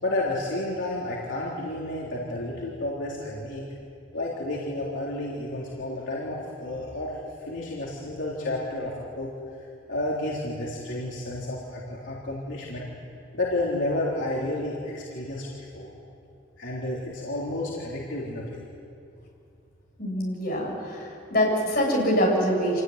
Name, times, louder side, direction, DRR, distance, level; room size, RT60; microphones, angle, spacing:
voice 1, 0.0-3.6 4.1-7.2 7.5-9.3 9.9-12.8 13.3-15.5 15.7-15.9 16.6-18.6, left 1 dB, 80° left, -5 dB, 3.7 m, -31 dB
voice 2, 20.0-22.8, equal, 50° left, -2 dB, 7.3 m, -24 dB
26.5 x 18.0 x 9.6 m, 2.5 s
head